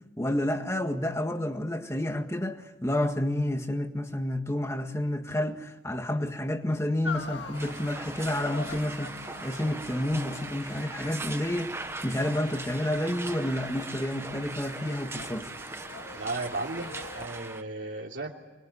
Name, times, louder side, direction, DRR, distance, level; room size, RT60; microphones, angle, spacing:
voice 1, 0.2-15.5, left 1 dB, 15° left, 1.7 m, -30 dB
sound 1, 7.0-17.3, left 4 dB, 75° left, 1.9 m, -44 dB
sound 2, 7.5-17.6, right 3 dB, 15° right, 1.1 m, -40 dB
voice 2, 16.1-18.3, right 2 dB, 75° right, 3.0 m, -35 dB
25.5 x 22.0 x 9.7 m
head